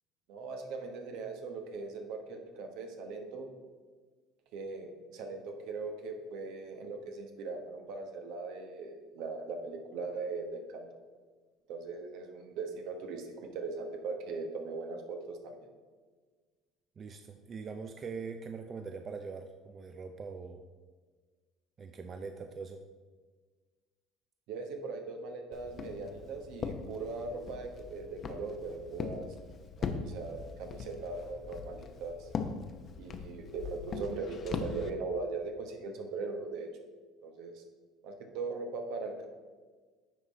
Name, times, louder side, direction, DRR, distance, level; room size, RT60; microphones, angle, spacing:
voice 1, 0.3-3.5 4.5-10.9 11.7-15.6 24.5-29.3 29.8-32.3 33.0-36.7 37.2-37.6 38.0-39.3, right 3 dB, 70° right, 4 dB, 1.1 m, -39 dB
voice 2, 17.0-20.6 21.8-22.8, right 5 dB, 40° right, 6 dB, 0.4 m, -42 dB
Walk footsteps, 25.5-34.9, left 5 dB, 40° left, 0.7 m, -41 dB
9.9 x 3.9 x 4.0 m, 1.4 s
supercardioid pair, 95°, 0 cm